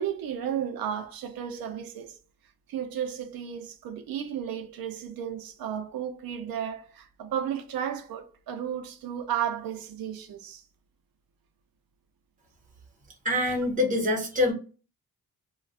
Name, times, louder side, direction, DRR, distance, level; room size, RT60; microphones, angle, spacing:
voice 1, 0.0-2.2 2.7-10.6, right 9 dB, 85° right, 0.5 m, -33 dB
voice 2, 13.2-14.5, left 2 dB, 20° right, 0.8 m, -25 dB
2.4 x 2.2 x 3.3 m
wide cardioid pair, 180°, 35 cm